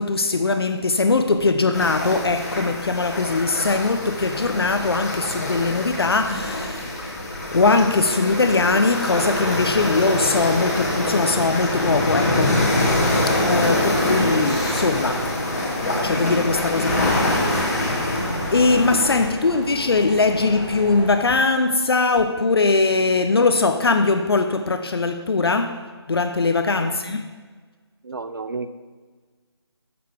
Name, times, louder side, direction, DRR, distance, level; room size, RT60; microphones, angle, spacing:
voice 1, 0.0-7.0 7.5-12.7 13.3-15.3 16.0-17.7 18.5-27.2, left 3 dB, 60° left, 0.5 m, -21 dB
sound 1, 1.7-19.3, left 1 dB, 35° left, 1.5 m, -24 dB
sound 2, 9.1-21.1, equal, 5° right, 0.6 m, -34 dB
voice 2, 28.0-28.7, right 4 dB, 50° right, 0.4 m, -32 dB
7.6 x 6.7 x 3.4 m
figure-of-eight pair, 175°, 14 cm